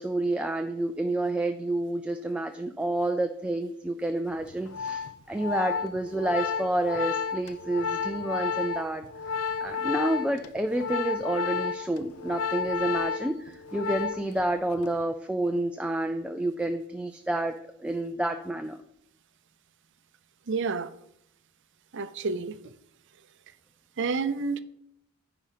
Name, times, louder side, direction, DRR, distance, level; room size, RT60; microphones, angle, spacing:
voice 1, 0.0-9.0 9.6-18.8, right 1 dB, 5° right, 0.4 m, -29 dB
Organ, 4.4-14.4 14.7-15.0, left 6 dB, 75° left, 0.6 m, -32 dB
voice 2, 20.5-20.9 21.9-22.7 24.0-24.6, right 4 dB, 55° right, 0.6 m, -29 dB
9.7 x 5.0 x 5.0 m
head